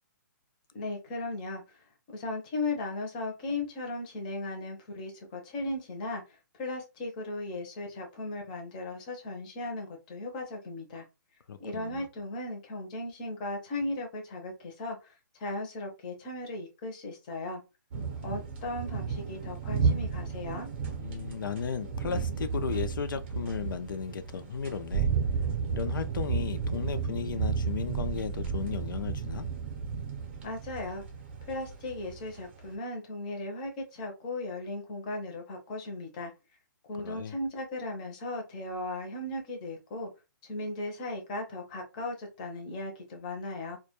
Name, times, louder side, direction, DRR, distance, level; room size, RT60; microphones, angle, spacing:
voice 1, 0.7-1.8 2.1-6.2 6.6-11.0 11.6-17.6 18.2-20.7 30.4-31.0 31.5-36.3 36.9-40.1 40.4-43.8, left 2 dB, 25° left, 0.5 m, -37 dB
voice 2, 11.5-12.1 21.0-25.1 25.7-29.5 37.0-37.4, left 7 dB, 85° left, 0.4 m, -35 dB
sound 1, 17.9-32.7, right 6 dB, 35° right, 0.6 m, -33 dB
2.1 x 2.1 x 2.8 m
hypercardioid pair, 170°, 11 cm